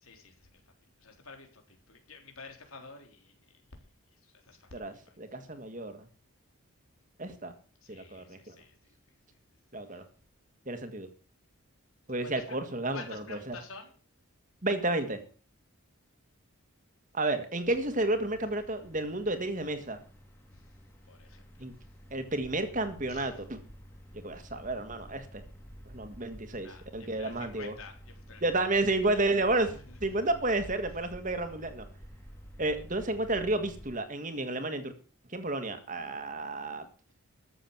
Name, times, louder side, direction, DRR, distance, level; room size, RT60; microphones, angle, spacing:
voice 1, 0.1-0.5 1.0-3.3 4.2-5.2 7.8-8.7 12.2-12.4 12.9-13.9 20.5-20.6 21.1-21.4 23.1-23.3 26.6-28.4 29.3-30.0, left 4 dB, 75° left, 3 dB, 3.6 m, -49 dB
voice 2, 4.7-6.1 7.2-7.5 7.9-8.6 9.7-10.0 10.7-11.1 12.1-13.6 14.6-15.2 17.1-20.0 21.6-21.7 22.1-23.6 24.1-25.4 25.9-27.8 28.4-29.7 30.0-31.9 32.6-34.9 35.3-36.9, right 2 dB, 35° right, 9 dB, 1.8 m, -31 dB
sound 1, 17.6-33.9, equal, 10° left, 2.4 m, -51 dB
13.5 x 7.3 x 7.3 m, 0.40 s
head